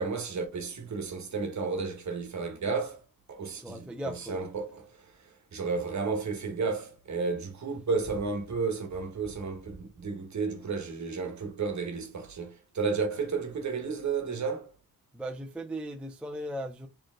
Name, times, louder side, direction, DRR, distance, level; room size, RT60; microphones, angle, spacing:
voice 1, 0.0-3.0 3.3-4.8 5.5-14.7, right 4 dB, 50° right, 1.2 m, -32 dB
voice 2, 3.6-4.4 15.1-16.9, right 1 dB, 5° right, 0.4 m, -37 dB
4.4 x 3.1 x 3.7 m
wide cardioid pair, 180°, 37 cm